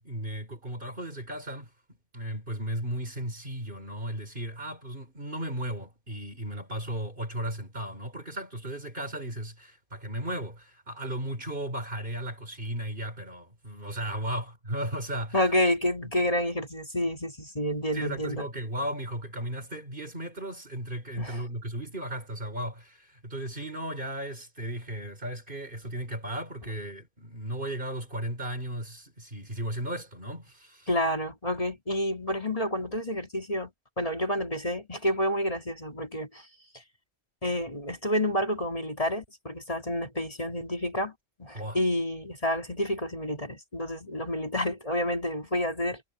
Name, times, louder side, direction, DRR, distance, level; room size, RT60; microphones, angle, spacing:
voice 1, 0.0-1.7 2.1-15.4 17.9-30.9 41.5-41.8, right 1 dB, 50° right, 4.4 m, -35 dB
voice 2, 15.3-18.5 21.2-21.4 30.9-33.7 34.0-36.5 36.7-36.8 37.4-41.1 41.4-46.0, left 1 dB, 35° left, 2.7 m, -29 dB
omnidirectional pair, 1.1 m